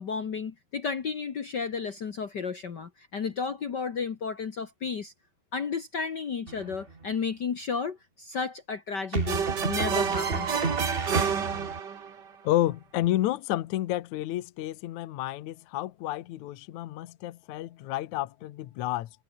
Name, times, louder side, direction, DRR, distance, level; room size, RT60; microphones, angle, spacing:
voice 1, 0.0-5.1 5.5-10.9, left 5 dB, 90° left, 0.9 m, -33 dB
sound 1, 6.5-7.1 9.1-11.8, right 4 dB, 90° right, 0.5 m, -32 dB
sound 2, 9.3-12.2, right 7 dB, 45° right, 1.4 m, -29 dB
voice 2, 12.4-19.1, left 14 dB, 70° left, 1.9 m, -30 dB
omnidirectional pair, 4.5 m